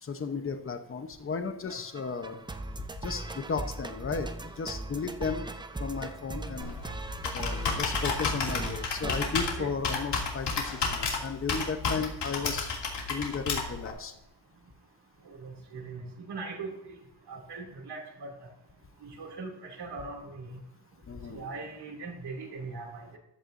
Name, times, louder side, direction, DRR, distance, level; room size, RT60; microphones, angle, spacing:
voice 1, 0.0-2.4 3.0-5.5 5.8-6.8 7.3-12.7 13.1-14.1 21.1-21.4, left 5 dB, 30° left, 7 dB, 0.9 m, -34 dB
sound 1, 1.7-10.3, right 2 dB, 10° right, 0.4 m, -39 dB
Computer keyboard, 6.6-13.9, left 4 dB, 70° left, 2.7 m, -32 dB
voice 2, 15.2-16.7 17.3-18.3 19.0-20.6 21.3-23.2, right 3 dB, 65° right, 0 dB, 2.9 m, -40 dB
14.5 x 11.0 x 2.7 m, 0.86 s
wide cardioid pair, 150°, 43 cm